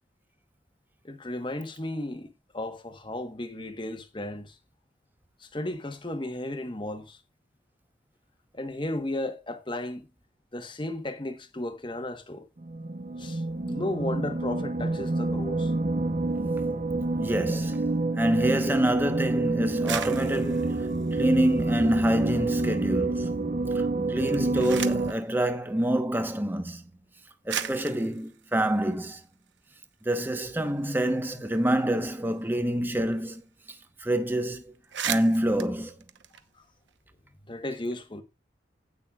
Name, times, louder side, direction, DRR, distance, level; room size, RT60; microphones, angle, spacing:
voice 1, 1.0-2.3 2.5-4.5 5.4-7.2 8.5-10.1 10.5-12.5 13.2-15.7 37.5-38.2, left 1 dB, 25° left, 1.1 m, -34 dB
sound 1, 12.6-25.1, right 2 dB, 40° right, 0.6 m, -28 dB
voice 2, 17.2-26.8 27.5-29.2 30.0-33.4 34.0-34.7 35.1-35.9, right 1 dB, 10° right, 1.0 m, -27 dB
sound 2, 19.7-22.3 22.6-23.3 24.1-25.2 26.2-26.3 27.1-27.2 27.5-29.8 30.2-30.3 30.5-33.1 33.4-33.5 33.8-34.1 34.4-34.5 34.7-37.0, right 9 dB, 85° right, 0.9 m, -38 dB
16.5 x 6.3 x 2.4 m
head